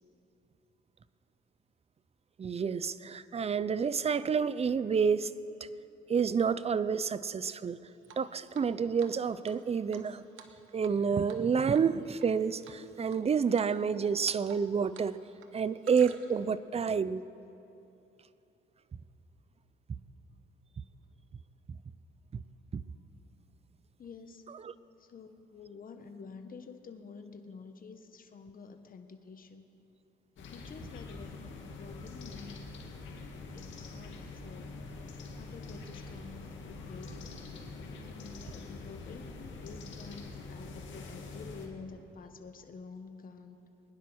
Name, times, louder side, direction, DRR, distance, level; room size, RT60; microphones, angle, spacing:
voice 1, 2.4-5.3 6.1-7.9 8.2-10.2 10.7-15.2 15.5-17.2 22.7-22.8 24.6-24.7, right 6 dB, 30° right, 0.6 m, -29 dB
Drip, 8.0-8.7 9.0-9.1 9.4-11.0 11.3-11.5 11.7-12.3 12.6-13.2 13.6-13.7 14.0-15.1 15.3-16.5, right 8 dB, 80° right, 1.2 m, -52 dB
voice 2, 24.0-24.4 25.0-29.7 30.4-32.6 33.5-34.8 35.3-37.4 37.9-43.6, left 5 dB, 45° left, 1.4 m, -49 dB
sound 1, 30.4-41.7, left 3 dB, 70° left, 2.2 m, -45 dB
22.5 x 10.0 x 6.3 m
cardioid pair, 90°, 20 cm